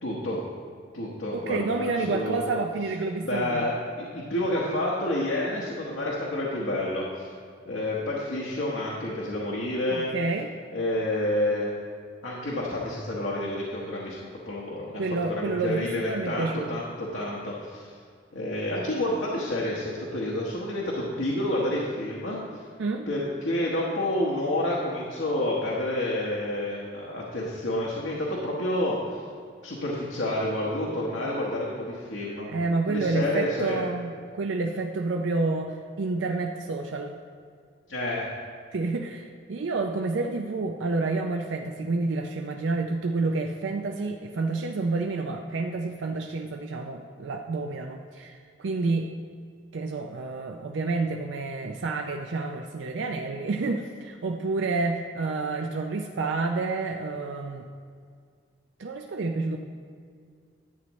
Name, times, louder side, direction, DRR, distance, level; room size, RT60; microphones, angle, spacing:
voice 1, 0.0-0.4 0.9-2.4 3.2-7.3 7.6-10.1 10.7-11.7 12.2-17.9 18.3-22.4 23.1-29.0 29.6-32.5 32.9-33.8 37.9-38.3, left 1 dB, 80° left, -4 dB, 1.2 m, -29 dB
voice 2, 1.3-3.7 9.9-10.5 14.9-16.8 22.8-23.1 32.5-37.1 38.7-49.1 49.7-57.7 58.8-59.6, right 3 dB, 75° right, 3 dB, 0.4 m, -29 dB
11.0 x 8.2 x 3.1 m, 2.1 s
head